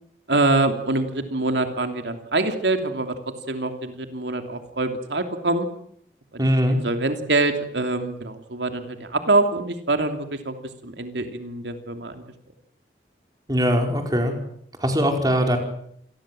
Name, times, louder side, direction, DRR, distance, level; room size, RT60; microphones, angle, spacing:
voice 1, 0.3-3.2 3.5-5.7 6.3-10.5 10.8-12.2, right 2 dB, 85° right, 6 dB, 2.9 m, -25 dB
voice 2, 6.4-6.8 13.5-14.3 14.8-15.6, equal, 20° right, 4 dB, 4.9 m, -21 dB
28.5 x 20.5 x 7.7 m, 0.69 s
head